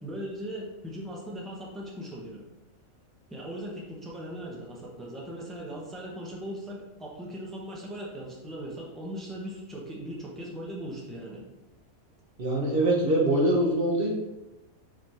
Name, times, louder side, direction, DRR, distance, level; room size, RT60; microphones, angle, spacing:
voice 1, 0.0-2.4 3.3-11.4, equal, ahead, -4 dB, 0.6 m, -39 dB
voice 2, 12.4-14.1, right 1 dB, 45° right, -2 dB, 1.0 m, -23 dB
5.1 x 3.3 x 2.9 m, 0.98 s
omnidirectional pair, 1.5 m